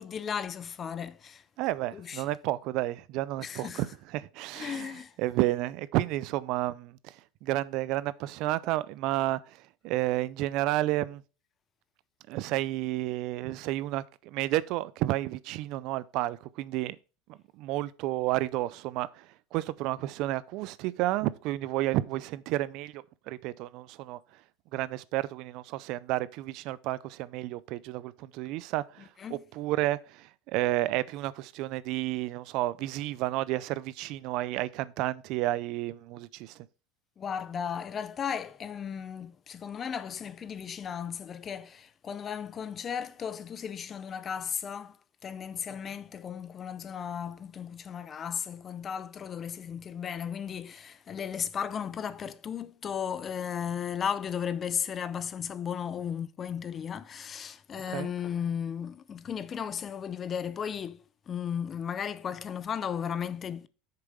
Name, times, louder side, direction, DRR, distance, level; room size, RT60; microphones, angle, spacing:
voice 1, 0.0-1.4 1.9-2.3 3.4-3.8 4.5-5.1 29.2-29.4 37.2-45.0 45.2-63.7, left 8 dB, 30° left, 0.5 m, -35 dB
voice 2, 1.6-3.9 4.1-4.9 5.2-7.1 7.4-9.6 9.8-11.2 12.3-17.0 17.3-24.2 24.7-36.6 57.9-58.1, right 16 dB, 60° right, 0.4 m, -31 dB
6.7 x 4.7 x 5.3 m
supercardioid pair, 110°, 0 cm